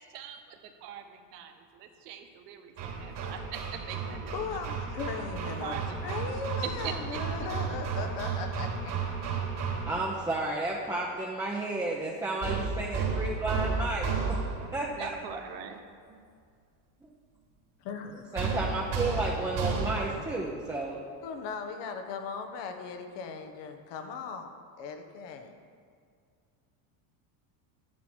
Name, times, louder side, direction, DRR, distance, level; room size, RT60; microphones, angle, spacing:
voice 1, 0.0-4.7 5.6-6.3 6.6-7.2 14.9-15.8, right 9 dB, 90° right, 6 dB, 1.2 m, -42 dB
Hammer, 2.8-10.2 12.4-14.8 18.4-20.3, right 5 dB, 55° right, 2.7 m, -33 dB
voice 2, 4.3-8.9 17.8-18.2 21.2-24.5 24.8-25.5, left 5 dB, 60° left, 6 dB, 1.3 m, -38 dB
voice 3, 9.9-14.4 14.7-15.4 18.3-21.0, right 2 dB, 5° right, -3 dB, 1.0 m, -32 dB
11.0 x 9.2 x 4.5 m, 2.2 s
supercardioid pair, 120°, 48 cm